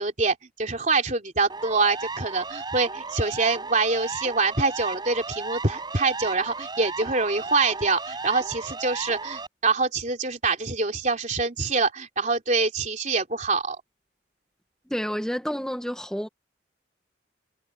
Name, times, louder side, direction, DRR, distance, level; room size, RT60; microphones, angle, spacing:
voice 1, 0.0-13.8, right 3 dB, 40° right, 3.5 m, -25 dB
Siren, 1.5-9.5, right 3 dB, 25° right, 7.9 m, -35 dB
voice 2, 14.9-16.3, equal, 5° left, 1.8 m, -29 dB
head